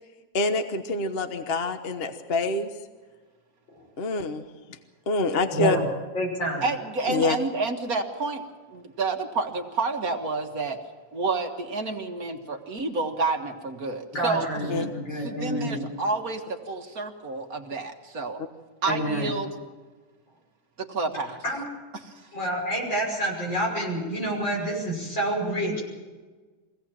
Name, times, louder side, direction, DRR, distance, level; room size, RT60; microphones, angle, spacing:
voice 1, 0.3-2.7 4.0-4.5 5.1-5.8 7.1-7.4 14.7-14.9, left 2 dB, 35° left, 7 dB, 1.2 m, -26 dB
voice 2, 5.5-5.8 6.1-6.7 14.1-15.8 18.9-19.3 21.4-21.6 22.3-25.8, right 1 dB, 75° left, -1 dB, 6.8 m, -28 dB
voice 3, 6.6-8.4 8.7-10.8 11.1-18.4 18.8-19.5 20.8-21.4 21.9-22.2, right 3 dB, 50° right, 3 dB, 1.9 m, -30 dB
23.5 x 17.5 x 7.6 m, 1.4 s
omnidirectional pair, 2.1 m